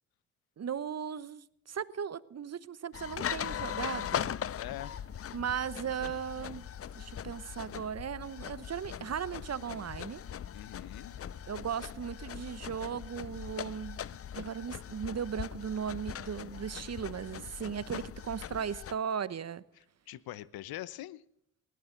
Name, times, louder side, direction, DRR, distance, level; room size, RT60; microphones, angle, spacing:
voice 1, 0.6-4.4 5.3-6.7 6.9-10.2 11.5-14.0 14.3-19.6, right 7 dB, 40° right, 1.0 m, -37 dB
sound 1, 2.9-19.0, left 9 dB, 35° left, 0.6 m, -40 dB
voice 2, 4.6-5.1 10.5-11.2 19.8-21.3, left 14 dB, 70° left, 0.9 m, -43 dB
19.5 x 16.5 x 3.9 m
hypercardioid pair, 45°, 38 cm